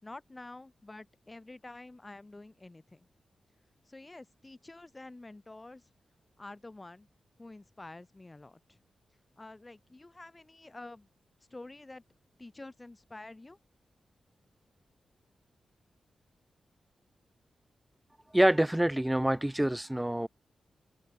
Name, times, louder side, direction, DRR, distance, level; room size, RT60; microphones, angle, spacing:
voice 1, 0.0-3.1 3.9-5.9 6.4-7.1 7.4-8.8 9.4-11.1 11.5-12.0 12.4-13.6, left 2 dB, 15° left, 5.5 m, -48 dB
voice 2, 18.3-20.3, right 1 dB, 5° right, 0.5 m, -26 dB
open air
wide cardioid pair, 155°, 0 cm